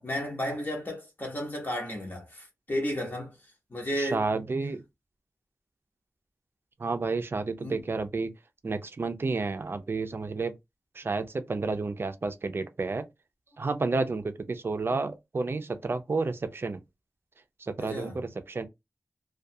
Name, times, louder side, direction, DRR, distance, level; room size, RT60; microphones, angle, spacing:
voice 1, 0.0-4.3 7.6-7.8 17.8-18.2, equal, 40° left, 0.9 m, -33 dB
voice 2, 4.0-4.8 6.8-8.3 8.6-10.5 10.9-13.1 13.6-16.8 17.6-18.7, right 3 dB, 45° right, 0.4 m, -31 dB
2.3 x 2.3 x 2.6 m
wide cardioid pair, 100°, 5 cm